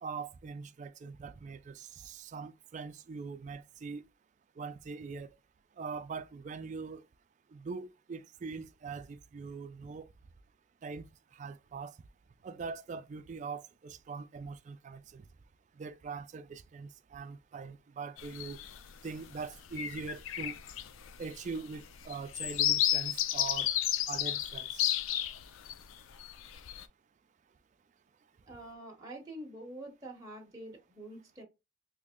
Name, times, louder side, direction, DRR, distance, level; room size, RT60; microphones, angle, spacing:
voice 1, 0.0-4.0 4.6-5.3 5.8-7.0 7.5-10.1 10.8-11.1 11.3-11.9 12.4-15.2 15.8-18.6 19.0-20.6 21.2-23.7 24.1-24.9, right 5 dB, 40° right, 0.3 m, -42 dB
sound 1, 18.2-18.8 19.3-19.4 19.7-25.7 26.2-26.8, left 12 dB, 90° left, 0.4 m, -32 dB
voice 2, 28.5-31.4, right 1 dB, 15° right, 0.8 m, -46 dB
3.1 x 2.6 x 3.6 m
head